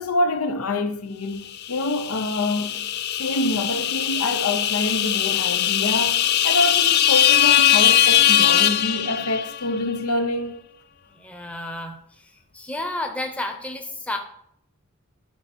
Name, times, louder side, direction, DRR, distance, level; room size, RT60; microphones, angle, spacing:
voice 1, 0.0-10.6, left 2 dB, 85° left, 0.7 m, -26 dB
sound 1, 1.6-9.7, left 11 dB, 50° left, 0.4 m, -20 dB
voice 2, 11.1-14.2, left 1 dB, 5° left, 0.8 m, -32 dB
10.5 x 4.3 x 4.4 m
head